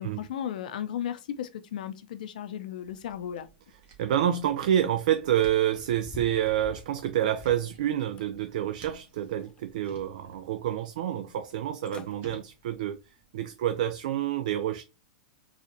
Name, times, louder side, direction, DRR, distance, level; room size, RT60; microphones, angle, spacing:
voice 1, 0.0-3.5, left 10 dB, 70° left, 0.6 m, -35 dB
sound 1, 2.8-14.0, right 4 dB, 40° right, 1.2 m, -56 dB
voice 2, 4.0-13.0 13.3-14.8, right 11 dB, 65° right, 0.4 m, -28 dB
sound 2, 5.8-7.7 8.2-9.0 9.4-10.2 10.7-10.8 11.5-11.6 11.8-12.2 12.6-12.9 13.4-13.5, left 4 dB, 20° left, 0.4 m, -48 dB
4.1 x 2.4 x 2.7 m
hypercardioid pair, 115°, 5 cm